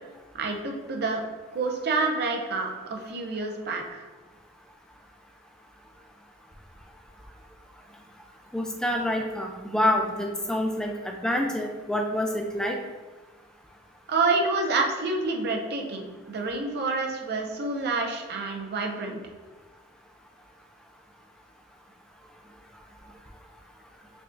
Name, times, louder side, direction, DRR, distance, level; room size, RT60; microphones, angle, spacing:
voice 1, 0.3-1.2 1.5-4.0 14.1-19.2, right 3 dB, 50° right, 2 dB, 0.6 m, -28 dB
voice 2, 8.5-12.8, left 1 dB, 5° left, 1 dB, 0.3 m, -27 dB
4.8 x 2.3 x 2.5 m, 1.3 s
head